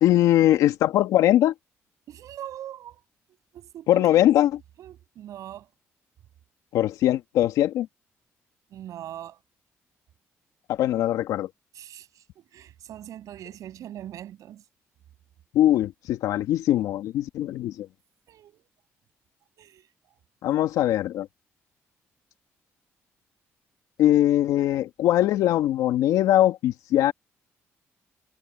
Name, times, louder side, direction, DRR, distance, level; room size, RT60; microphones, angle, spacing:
voice 1, 0.0-1.5 3.9-4.5 6.7-7.9 10.7-11.5 15.5-17.9 20.4-21.3 24.0-27.1, left 13 dB, 80° left, 1.9 m, -21 dB
voice 2, 2.1-3.0 3.5-4.4 4.8-5.7 8.7-9.4 11.7-14.6 18.3-18.7 19.6-19.9, right 11 dB, 75° right, 7.5 m, -41 dB
supercardioid pair, 60°, 6 cm